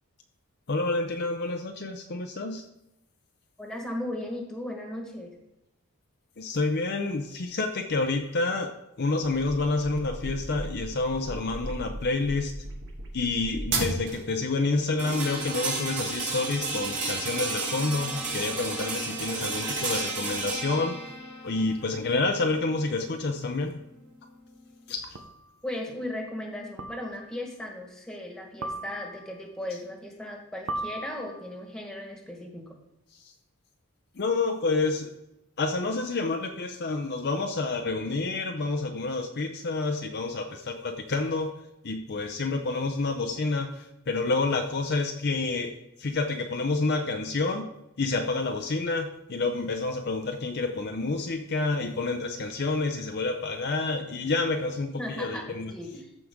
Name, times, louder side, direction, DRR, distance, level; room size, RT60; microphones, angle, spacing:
voice 1, 0.7-2.6 6.4-12.5 13.1-21.0 21.4-23.8 24.9-25.2 33.2-33.3 34.1-35.1 35.6-41.5 41.8-45.7 46.0-47.7 48.0-55.7, left 3 dB, 50° left, 5 dB, 0.6 m, -28 dB
voice 2, 3.6-5.3 25.6-32.6 55.0-56.1, left 1 dB, 5° left, 0 dB, 1.6 m, -36 dB
sound 1, 9.2-14.4, right 2 dB, 55° right, 1.6 m, -35 dB
sound 2, 15.0-24.9, right 3 dB, 35° right, 2.5 m, -33 dB
sound 3, 23.6-23.7 25.2-25.5 26.8-27.4 28.6-29.4 30.7-31.6, right 2 dB, 80° right, 0.9 m, -37 dB
14.0 x 4.9 x 3.7 m, 0.88 s
head